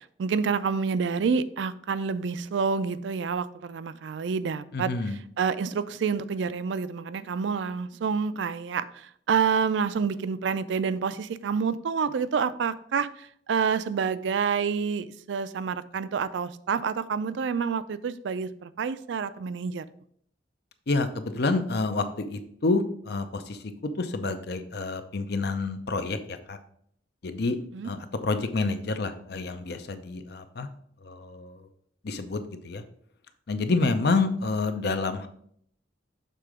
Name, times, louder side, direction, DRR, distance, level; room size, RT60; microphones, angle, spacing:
voice 1, 0.0-19.8 27.7-27.9, right 6 dB, 75° right, 15 dB, 0.4 m, -28 dB
voice 2, 4.7-5.2 20.9-23.6 24.0-26.6 27.2-27.6 27.8-30.7 31.0-31.6 32.0-32.8 33.5-35.3, left 3 dB, 60° left, 9 dB, 0.6 m, -28 dB
6.8 x 3.7 x 4.8 m, 0.65 s
head